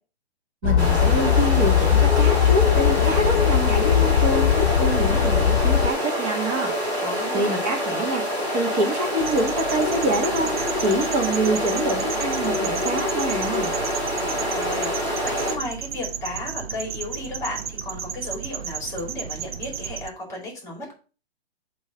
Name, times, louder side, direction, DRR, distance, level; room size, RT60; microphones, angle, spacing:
sound 1, 0.6-5.9, left 9 dB, 85° left, 0.5 m, -19 dB
voice 1, 0.6-6.7 7.3-8.3 8.5-13.7, right 1 dB, 30° right, 1 dB, 1.7 m, -26 dB
sound 2, 0.8-15.5, equal, 10° right, 1.6 m, -26 dB
voice 2, 7.0-7.5 14.2-20.9, left 1 dB, 10° left, -1 dB, 2.4 m, -34 dB
sound 3, 9.2-20.1, right 8 dB, 65° right, 0.8 m, -34 dB
8.2 x 3.1 x 5.2 m, 0.35 s
hypercardioid pair, 165°, 32 cm